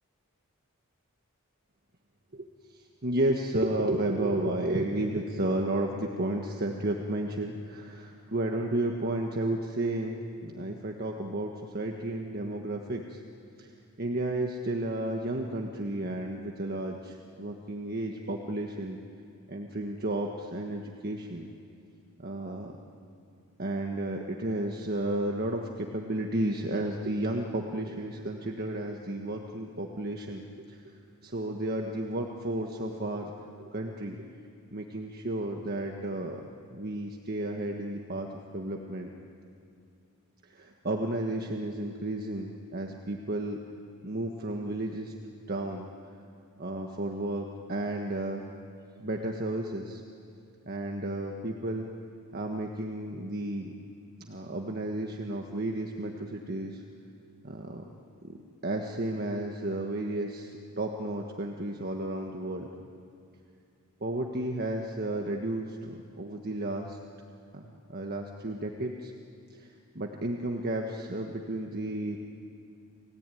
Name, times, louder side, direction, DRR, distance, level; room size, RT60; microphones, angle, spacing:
voice 1, 2.3-13.2 13.6-13.7 14.0-19.0 19.5-21.5 22.2-22.7 23.6-30.8 31.2-33.3 33.6-34.2 34.7-36.4 36.7-38.3 38.5-39.1 40.4-43.6 44.0-45.1 45.5-45.9 46.6-48.4 49.0-50.0 50.6-51.9 52.3-53.7 54.2-56.8 57.4-57.8 58.2-58.4 58.6-62.7 64.0-67.0 67.5-67.6 67.9-69.1 69.5-69.7 69.9-72.2, right 1 dB, 45° right, 2 dB, 1.5 m, -32 dB
29.5 x 17.5 x 9.3 m, 2.5 s
head